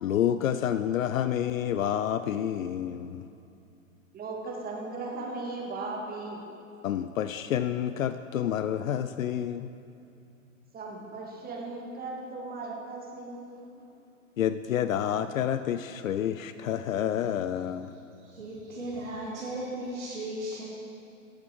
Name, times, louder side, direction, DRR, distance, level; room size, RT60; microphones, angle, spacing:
voice 1, 0.0-3.3 6.8-9.7 14.4-17.9, left 10 dB, 75° left, 12 dB, 0.5 m, -29 dB
voice 2, 4.1-6.4 10.7-13.9, right 3 dB, 20° right, -2 dB, 2.2 m, -37 dB
voice 3, 18.2-20.6, right 1 dB, 80° right, -6 dB, 2.2 m, -36 dB
17.0 x 7.3 x 4.6 m, 2.7 s
figure-of-eight pair, 100°, 40 cm